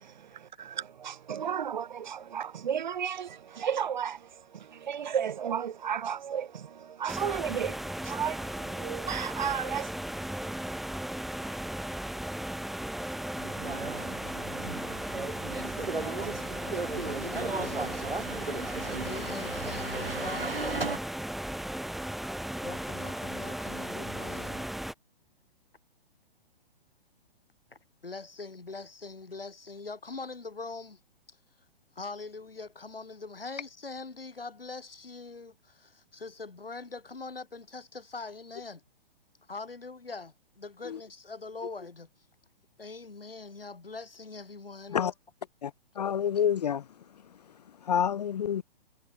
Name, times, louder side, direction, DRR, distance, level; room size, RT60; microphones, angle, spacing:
voice 1, 0.0-9.9, right 8 dB, 50° right, 0.7 m, -34 dB
sound 1, 7.1-24.9, right 1 dB, ahead, 0.9 m, -36 dB
sound 2, 13.4-21.0, right 3 dB, 75° right, 5.5 m, -36 dB
voice 2, 16.6-18.0 19.0-21.0 22.6-24.7 28.0-31.0 31.9-38.8 39.5-42.1 42.8-45.0, left 3 dB, 75° left, 3.4 m, -42 dB
voice 3, 46.0-46.8 47.9-48.6, left 8 dB, 45° left, 0.5 m, -27 dB
figure-of-eight pair, 125°, 29 cm